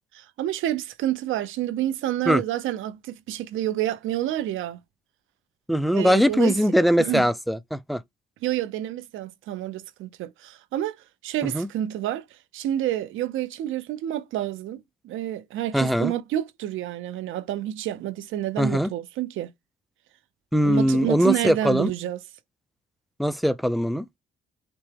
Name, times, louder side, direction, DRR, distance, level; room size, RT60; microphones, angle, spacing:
voice 1, 0.1-4.8 5.9-6.6 7.0-7.3 8.4-11.0 11.2-12.2 12.5-19.5 20.6-22.2, right 12 dB, 80° right, 0.6 m, -29 dB
voice 2, 5.7-8.0 11.4-11.7 15.7-16.1 18.6-18.9 20.5-21.9 23.2-24.1, equal, ahead, 0.4 m, -21 dB
5.9 x 2.1 x 3.4 m
cardioid pair, 90°, 20 cm